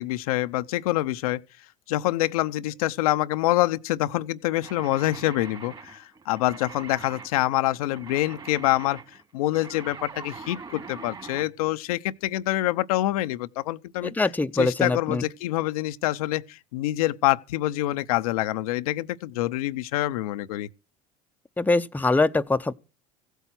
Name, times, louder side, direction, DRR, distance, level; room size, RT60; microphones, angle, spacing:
voice 1, 0.0-1.4 1.9-9.0 9.3-14.1 14.6-20.7, left 16 dB, 80° left, 0.7 m, -26 dB
sound 1, 4.6-11.5, right 4 dB, 25° right, 2.8 m, -43 dB
voice 2, 14.0-15.3 21.6-22.7, left 3 dB, 10° left, 0.7 m, -23 dB
16.0 x 8.2 x 6.0 m
hypercardioid pair, 80°, 18 cm